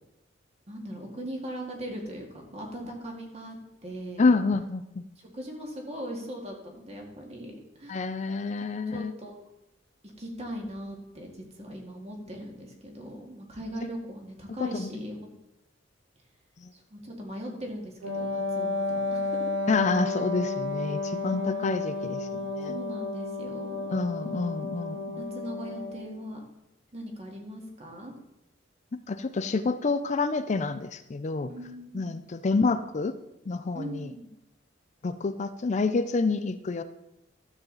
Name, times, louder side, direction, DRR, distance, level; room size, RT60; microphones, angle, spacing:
voice 1, 0.7-3.6 3.8-4.3 5.3-8.0 8.9-9.4 10.2-15.2 16.7-19.5 21.2-21.7 22.7-23.9 25.2-26.4 26.9-28.1 31.5-32.2 33.7-34.3, equal, 35° right, 1 dB, 1.9 m, -39 dB
voice 2, 4.2-5.0 7.9-9.1 14.6-14.9 16.6-16.7 19.7-22.8 23.9-25.2 28.9-31.5 31.9-33.2 33.5-34.1 35.0-36.8, left 3 dB, 40° left, 11 dB, 0.4 m, -28 dB
Wind instrument woodwind instrument, 18.0-26.1, left 3 dB, 90° right, 2.1 m, -32 dB
12.5 x 7.2 x 3.9 m, 0.88 s
head